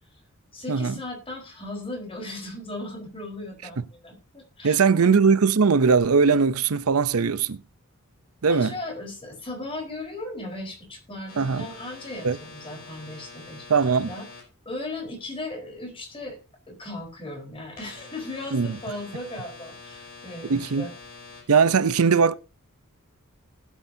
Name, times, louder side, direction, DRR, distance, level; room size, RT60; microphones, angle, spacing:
voice 1, 0.5-5.1 8.5-13.7 14.1-14.2 14.7-16.4 16.7-20.9, left 2 dB, 25° left, 4.2 m, -37 dB
voice 2, 4.6-7.6 8.4-8.7 11.4-11.7 12.2-12.4 13.7-14.1 18.5-18.8 20.4-20.9 21.5-22.3, right 5 dB, 80° right, 0.6 m, -20 dB
sound 1, 11.3-14.4 17.8-21.4, left 4 dB, 45° left, 6.2 m, -45 dB
19.0 x 8.3 x 2.7 m
head